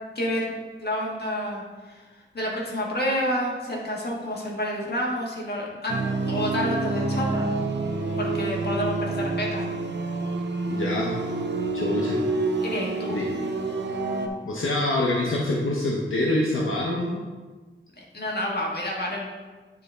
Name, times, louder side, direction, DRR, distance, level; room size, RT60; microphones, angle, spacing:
voice 1, 0.1-0.5 0.8-2.0 2.3-6.0 6.2-7.5 8.2-9.7 12.6-13.2 18.0-19.3, left 1 dB, 55° left, -2 dB, 1.5 m, -29 dB
sound 1, 5.9-14.3, right 3 dB, 60° right, 0.7 m, -28 dB
voice 2, 10.7-11.1 11.7-12.2 13.1-13.3 14.5-17.2, left 1 dB, 80° left, -3 dB, 0.8 m, -25 dB
9.4 x 4.0 x 3.4 m, 1.3 s
wide cardioid pair, 85°, 20 cm